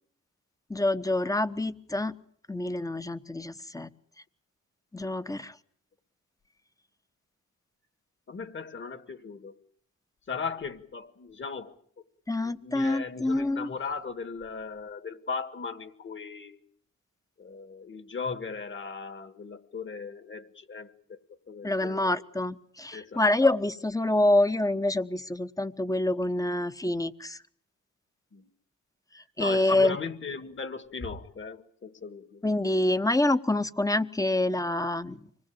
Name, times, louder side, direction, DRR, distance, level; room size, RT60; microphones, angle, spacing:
voice 1, 0.7-2.2 2.5-3.9 4.9-5.5 12.3-13.7 21.6-27.4 29.4-30.0 32.4-35.2, left 2 dB, 10° left, 12 dB, 1.0 m, -26 dB
voice 2, 8.3-9.6 10.3-11.7 12.4-16.6 17.4-21.2 21.5-22.2 22.9-23.3 28.3-28.5 29.1-32.5, left 5 dB, 40° left, 12 dB, 1.9 m, -38 dB
25.5 x 20.5 x 8.7 m, 0.63 s
wide cardioid pair, 115°, 30 cm